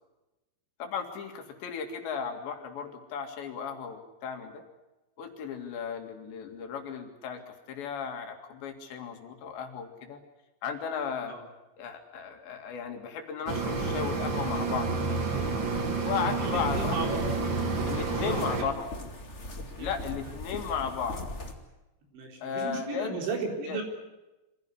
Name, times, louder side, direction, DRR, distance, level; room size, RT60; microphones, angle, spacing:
voice 1, 0.8-4.6 5.2-10.2 10.6-11.4 11.8-15.2 16.0-17.1 17.9-18.9 19.8-21.2 22.4-23.2 23.6-23.8, left 6 dB, 75° left, 5 dB, 4.5 m, -35 dB
sound 1, 13.5-18.6, right 4 dB, 35° right, 2.3 m, -30 dB
voice 2, 16.4-17.2 18.2-18.7 19.8-19.9 20.3-20.4 22.1-23.8, right 4 dB, 75° right, 2 dB, 6.3 m, -35 dB
sound 2, 16.5-21.5, left 1 dB, 30° left, 1.4 m, -40 dB
25.0 x 16.0 x 9.8 m, 1.0 s
omnidirectional pair, 5.2 m